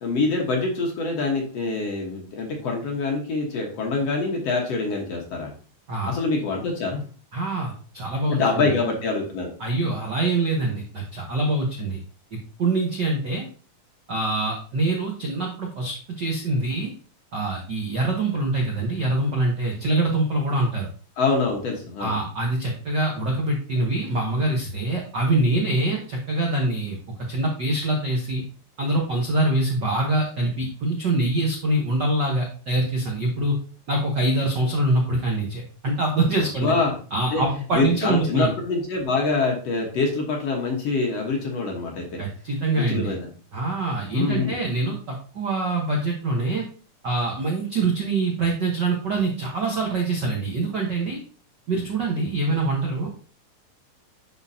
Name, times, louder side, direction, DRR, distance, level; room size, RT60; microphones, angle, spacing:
voice 1, 0.0-5.5 6.1-7.0 8.3-9.5 21.2-22.2 36.6-36.9 37.3-37.4 37.7-42.2 42.7-43.3 44.1-44.6, left 3 dB, 55° left, 0 dB, 2.2 m, -25 dB
voice 2, 7.3-8.7 9.6-12.0 12.3-13.4 14.1-16.9 17.3-20.9 22.0-27.0 27.3-28.4 28.8-33.6 33.9-36.7 37.1-38.5 42.2-43.1 43.5-46.6 47.0-51.2 51.7-53.1, right 2 dB, 60° right, -1 dB, 1.1 m, -24 dB
11.0 x 4.3 x 2.8 m, 0.40 s
omnidirectional pair, 3.6 m